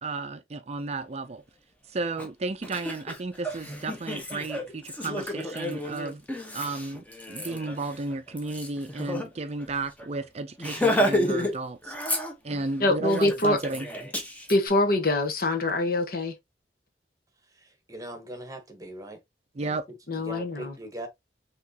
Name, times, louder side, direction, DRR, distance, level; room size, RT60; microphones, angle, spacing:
voice 1, 0.0-1.4 1.9-6.2 6.5-12.0 12.4-13.9 19.5-19.8, right 3 dB, 40° right, 0.5 m, -33 dB
Laughter, 2.2-2.3 2.6-9.3 9.6-9.7 10.0-10.2 10.6-11.5 11.8-12.7 13.1-14.6, left 1 dB, 10° left, 1.0 m, -31 dB
voice 2, 12.8-13.6 14.5-16.3 20.1-20.7, left 2 dB, 55° left, 1.2 m, -24 dB
voice 3, 17.5-19.2 19.6-19.8 20.1-21.1, right 1 dB, 20° right, 1.1 m, -40 dB
5.9 x 3.1 x 2.8 m
head